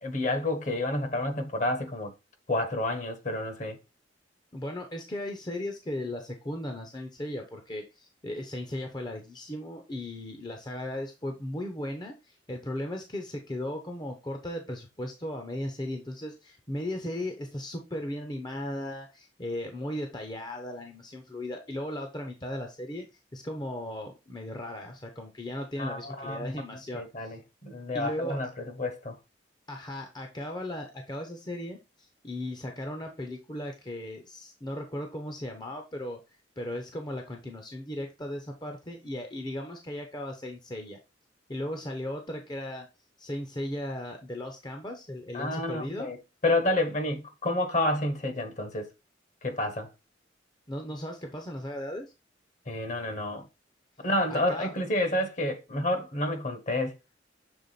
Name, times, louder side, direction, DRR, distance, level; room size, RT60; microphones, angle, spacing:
voice 1, 0.0-2.1 2.5-3.8 25.8-26.6 26.9-28.5 28.8-29.2 45.3-48.9 49.4-49.9 52.7-53.5 54.0-57.0, left 1 dB, 40° left, 1.2 m, -29 dB
voice 2, 4.5-23.1 23.3-27.4 27.9-28.4 29.7-36.2 36.6-41.0 41.5-42.9 43.2-46.1 50.7-52.1 54.3-54.7, left 1 dB, 25° left, 0.8 m, -36 dB
6.8 x 3.6 x 4.0 m
head